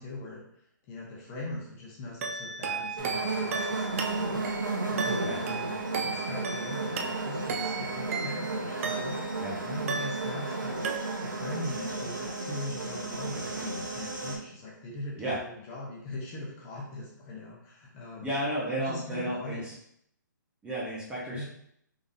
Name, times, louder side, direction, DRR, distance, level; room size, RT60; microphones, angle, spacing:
voice 1, 0.0-9.3 9.6-18.3 18.7-19.6 21.3-21.4, left 2 dB, 25° left, -4 dB, 1.0 m, -41 dB
sound 1, 2.2-9.5 9.9-10.6 10.8-11.5, right 5 dB, 40° right, 0.4 m, -35 dB
sound 2, 3.0-14.4, right 3 dB, 80° right, 1.0 m, -33 dB
voice 2, 18.2-19.7 20.6-21.4, right 1 dB, 10° right, -7 dB, 0.9 m, -33 dB
3.7 x 3.6 x 2.7 m, 0.71 s
hypercardioid pair, 140°, 11 cm